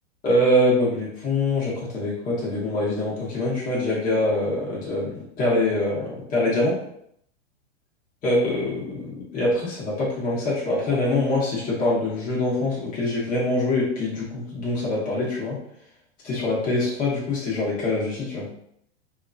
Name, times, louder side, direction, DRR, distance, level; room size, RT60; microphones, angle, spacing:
voice 1, 0.2-6.7 8.2-15.6 16.2-18.5, left 1 dB, 25° left, -7 dB, 1.0 m, -24 dB
2.9 x 2.6 x 2.4 m, 0.70 s
hypercardioid pair, 130°, 36 cm